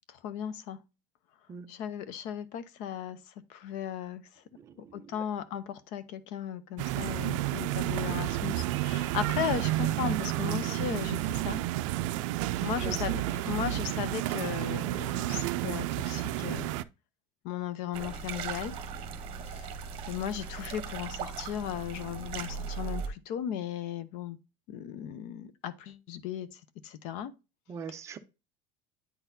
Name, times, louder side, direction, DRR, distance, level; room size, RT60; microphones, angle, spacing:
voice 1, 0.1-0.8 1.7-3.2 3.5-4.2 4.9-11.6 12.6-16.7 17.4-18.8 19.4-19.7 20.1-24.4 24.7-27.3, left 9 dB, 50° left, 0.6 m, -36 dB
voice 2, 4.6-5.1 12.8-13.0 27.7-28.2, right 6 dB, 20° right, 0.4 m, -41 dB
sound 1, 6.8-16.8, right 15 dB, 80° right, 0.4 m, -31 dB
sound 2, 17.9-23.1, right 6 dB, 35° right, 0.9 m, -38 dB
9.3 x 4.0 x 2.6 m
cardioid pair, 175°, 16 cm